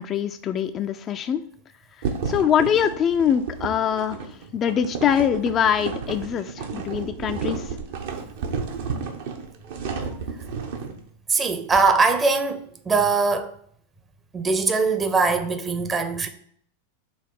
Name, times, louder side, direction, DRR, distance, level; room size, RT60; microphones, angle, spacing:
voice 1, 0.0-1.4 2.3-4.2 4.5-7.7, left 8 dB, 30° left, 0.4 m, -23 dB
sound 1, 2.0-10.9, right 5 dB, 55° right, 0.8 m, -32 dB
voice 2, 11.3-13.5 14.3-16.3, right 4 dB, 20° right, 0.7 m, -21 dB
5.3 x 3.7 x 5.3 m
figure-of-eight pair, 90°, 0 cm